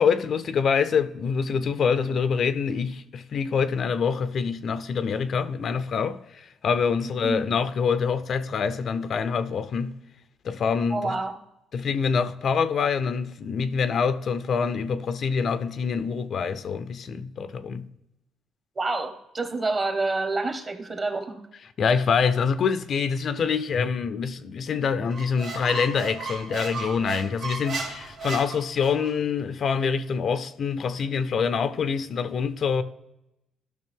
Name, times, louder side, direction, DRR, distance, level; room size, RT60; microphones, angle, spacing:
voice 1, 0.0-10.0 10.4-11.2 11.7-17.9 21.8-32.8, left 6 dB, 55° left, 0.5 m, -25 dB
voice 2, 7.0-7.4 10.9-11.4 18.7-21.4, right 3 dB, 30° right, 1.4 m, -28 dB
Squeak, 25.1-29.1, right 3 dB, 80° right, 2.1 m, -35 dB
13.5 x 6.0 x 3.6 m
cardioid pair, 105°, 0 cm